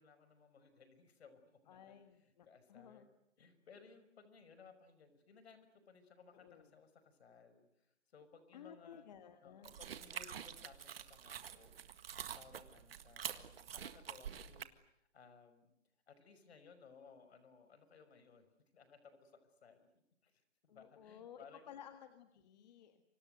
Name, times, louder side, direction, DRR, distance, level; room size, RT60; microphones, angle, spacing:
voice 1, 0.0-3.1 3.4-9.1 9.4-15.7 16.1-19.9 20.2-21.7, left 5 dB, 55° left, 11 dB, 5.9 m, -62 dB
voice 2, 1.7-3.1 6.4-6.7 8.5-10.1 20.7-23.0, left 9 dB, 35° left, 7 dB, 1.7 m, -56 dB
sound 1, 9.6-14.6, right 8 dB, 50° right, 1.9 m, -47 dB
29.0 x 25.5 x 8.0 m, 0.81 s
hypercardioid pair, 160°, 37 cm